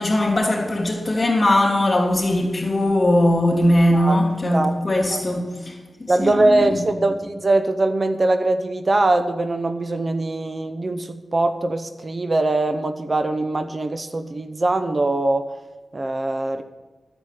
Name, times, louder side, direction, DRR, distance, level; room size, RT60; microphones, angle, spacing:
voice 1, 0.0-6.8, left 1 dB, 35° left, -5 dB, 3.1 m, -20 dB
voice 2, 6.1-15.5 15.9-16.6, right 2 dB, 40° right, 8 dB, 0.8 m, -22 dB
10.5 x 7.1 x 9.3 m, 1.3 s
cardioid pair, 55°, 0 cm